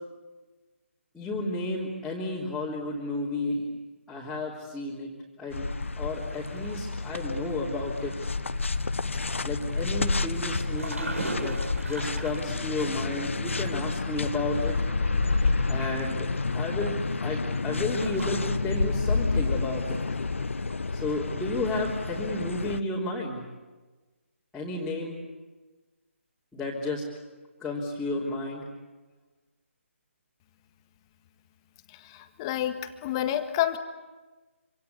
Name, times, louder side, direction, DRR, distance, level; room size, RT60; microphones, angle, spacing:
voice 1, 1.1-3.7 4.1-5.1 5.4-5.7 6.0-8.3 9.4-14.8 15.7-16.3 16.5-20.0 20.9-23.5 24.5-25.2 26.5-27.1 27.6-28.6, left 2 dB, 5° left, -8 dB, 3.4 m, -32 dB
sound 1, 5.5-22.8, left 3 dB, 65° left, 1.2 m, -29 dB
sound 2, 6.1-22.6, right 2 dB, 80° right, 7.5 m, -44 dB
voice 2, 32.4-32.7 33.0-33.8, left 12 dB, 20° left, 8 dB, 1.6 m, -27 dB
27.0 x 26.5 x 8.4 m, 1.2 s
figure-of-eight pair, 150°, 7 cm